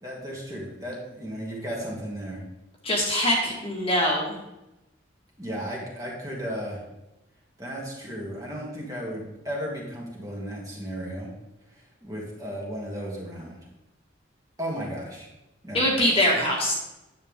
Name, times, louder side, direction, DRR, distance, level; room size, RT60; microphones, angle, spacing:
voice 1, 0.0-2.4 5.4-6.8 7.6-11.3 12.0-13.6 14.6-15.3 15.6-15.9, equal, 20° right, -4 dB, 2.5 m, -34 dB
voice 2, 2.8-4.4 15.7-16.8, left 1 dB, 30° left, -2 dB, 2.0 m, -23 dB
10.5 x 8.3 x 3.7 m, 0.94 s
head